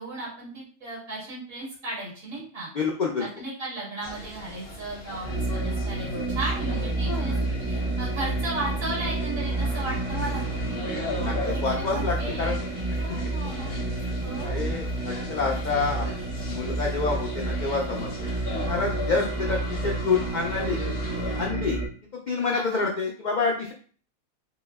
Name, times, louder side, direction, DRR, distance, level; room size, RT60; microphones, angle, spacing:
voice 1, 0.0-2.7 3.2-7.3 7.7-11.0 11.5-12.6 13.0-13.7 14.2-14.7 22.5-22.8, right 2 dB, 85° right, -6 dB, 2.1 m, -35 dB
voice 2, 2.7-3.3 7.1-7.4 11.1-12.6 13.9-16.1 16.5-18.1 18.7-20.8 21.4-21.8 22.1-23.7, left 4 dB, 85° left, -1 dB, 0.4 m, -28 dB
sound 1, 4.0-21.5, left 2 dB, 50° left, 0.9 m, -38 dB
sound 2, 5.2-21.9, right 2 dB, 40° right, 0.6 m, -30 dB
5.0 x 2.1 x 2.3 m, 0.43 s
omnidirectional pair, 1.4 m